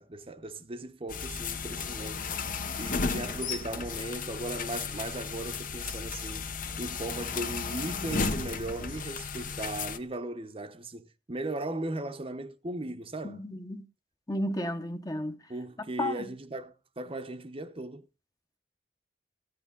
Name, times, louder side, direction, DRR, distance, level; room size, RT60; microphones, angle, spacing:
voice 1, 0.0-2.2 2.5-6.5 6.8-13.4 15.5-18.0, right 2 dB, 35° right, 0.8 m, -37 dB
sound 1, 1.1-10.0, left 5 dB, 50° left, 0.9 m, -34 dB
voice 2, 13.2-13.8 14.3-15.4 16.0-16.2, left 1 dB, 20° left, 0.9 m, -32 dB
14.5 x 9.7 x 3.8 m
head